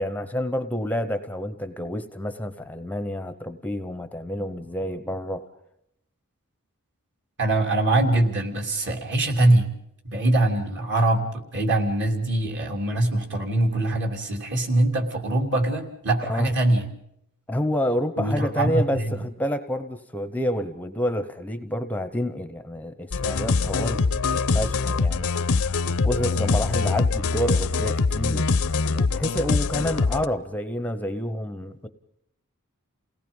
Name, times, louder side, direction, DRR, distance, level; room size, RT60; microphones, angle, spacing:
voice 1, 0.0-5.5 16.3-16.5 17.5-25.3 25.6-25.7 26.0-28.5 28.9-31.9, equal, 5° left, 9 dB, 0.8 m, -28 dB
voice 2, 7.4-9.7 10.0-16.9 18.2-19.1, right 2 dB, 55° right, 3 dB, 3.2 m, -23 dB
sound 1, 23.1-30.2, left 4 dB, 70° left, 0.7 m, -23 dB
29.0 x 18.5 x 5.4 m, 0.77 s
head